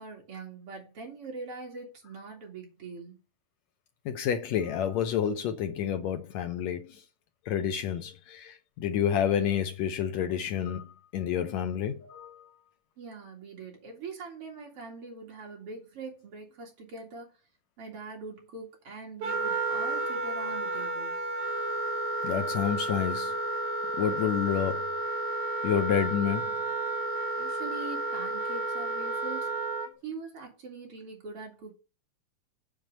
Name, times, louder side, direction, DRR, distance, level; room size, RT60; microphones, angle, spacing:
voice 1, 0.0-3.2 13.0-17.3 17.8-21.2 27.4-29.5 30.0-31.7, right 3 dB, 45° right, 3.1 m, -42 dB
voice 2, 4.0-7.0 7.5-12.5 22.2-23.3 24.0-24.9 25.6-26.5, left 9 dB, 75° left, 1.6 m, -29 dB
Wind instrument woodwind instrument, 19.2-29.9, right 2 dB, 70° right, 3.4 m, -32 dB
7.7 x 5.2 x 6.5 m
omnidirectional pair, 4.0 m